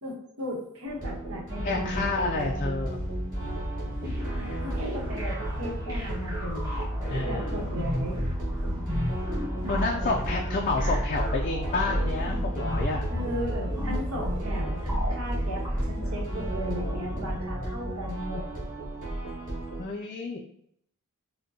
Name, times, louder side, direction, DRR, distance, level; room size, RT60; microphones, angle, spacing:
voice 1, 0.0-2.7 4.6-6.7 7.2-8.2 13.1-18.4, equal, 70° right, -2 dB, 1.1 m, -36 dB
sound 1, 0.9-19.8, right 1 dB, 35° right, 1.5 m, -36 dB
voice 2, 1.6-3.0 7.1-7.5 9.7-13.1 19.8-20.4, left 3 dB, 40° left, 0 dB, 0.3 m, -29 dB
sound 2, 1.6-18.1, equal, 5° left, 0.7 m, -35 dB
sound 3, 4.0-17.6, equal, 15° right, 1.3 m, -33 dB
5.1 x 2.2 x 2.7 m, 0.70 s
head